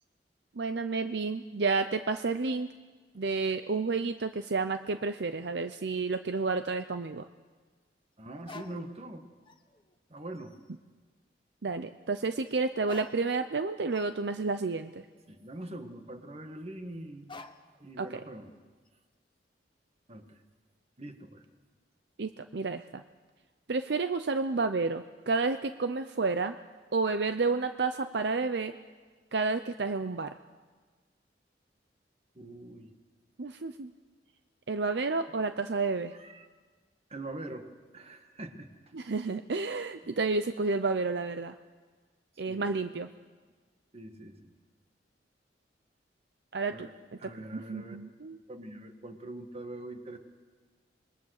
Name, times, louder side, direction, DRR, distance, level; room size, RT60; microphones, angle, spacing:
voice 1, 0.5-2.7 3.2-7.3 11.6-15.0 18.0-18.2 22.2-23.0 23.7-26.6 26.9-28.7 29.3-30.4 33.4-33.9 34.7-36.1 38.9-41.6 42.4-43.1 46.5-46.9 47.2-48.4, right 4 dB, 70° right, 10 dB, 0.6 m, -30 dB
sound 1, 4.2-6.2 6.5-6.6 8.4-9.2 9.5-10.0 10.3-10.7 12.5-12.6 12.8-16.1 17.3-17.8 18.2-18.9, left 3 dB, 30° left, 1.0 m, -53 dB
voice 2, 8.2-9.3 10.1-10.6 15.3-17.3 17.8-18.5 20.1-20.4 21.0-21.4 32.4-32.9 36.1-36.5 37.1-38.7 42.5-42.7 43.9-44.5 46.7-46.9 47.2-48.0 48.5-50.2, right 1 dB, 35° right, 6 dB, 1.7 m, -43 dB
27.0 x 21.0 x 6.6 m, 1.4 s
head